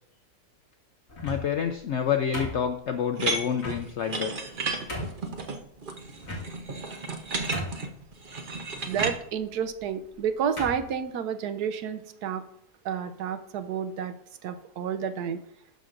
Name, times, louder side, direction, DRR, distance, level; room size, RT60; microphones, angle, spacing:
sound 1, 1.1-1.6 2.3-3.0 3.6-3.8 4.4-4.5 4.9-5.2 6.2-6.8 7.1-7.2 7.5-8.0 8.9-9.2 10.0-10.2 10.6-10.9, left 1 dB, 40° left, 2.2 m, -35 dB
voice 1, 1.2-4.5, left 8 dB, 75° left, 7 dB, 0.6 m, -28 dB
sound 2, 3.2-9.2, right 3 dB, 40° right, 0.8 m, -33 dB
voice 2, 8.9-12.4 12.8-14.1 14.4-15.4, right 8 dB, 80° right, 10 dB, 1.2 m, -30 dB
11.5 x 6.1 x 2.6 m, 0.73 s
omnidirectional pair, 1.7 m